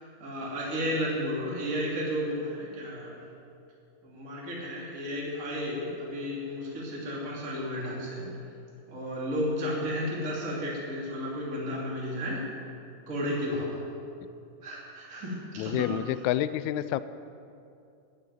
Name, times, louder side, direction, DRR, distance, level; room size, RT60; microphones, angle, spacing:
voice 1, 0.0-3.2 4.0-8.3 8.9-12.4 13.1-13.8 14.6-15.9, equal, 25° right, -4 dB, 2.7 m, -33 dB
voice 2, 15.6-17.0, left 13 dB, 90° left, 14 dB, 1.6 m, -29 dB
11.0 x 9.7 x 9.3 m, 2.5 s
omnidirectional pair, 3.8 m